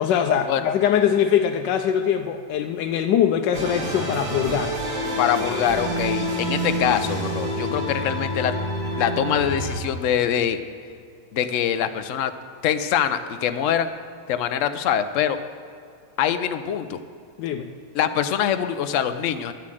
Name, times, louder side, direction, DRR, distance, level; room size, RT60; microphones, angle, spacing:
voice 1, 0.0-4.7 17.4-17.7, left 9 dB, 90° left, 6 dB, 1.3 m, -22 dB
sound 1, 3.5-9.8, equal, 60° right, 2.3 m, -27 dB
voice 2, 5.2-8.5 9.0-10.6 11.3-12.3 12.6-13.9 14.3-15.4 16.2-17.0 17.9-19.5, left 9 dB, 60° left, 10 dB, 0.8 m, -24 dB
11.5 x 7.3 x 7.7 m, 2.3 s
omnidirectional pair, 1.9 m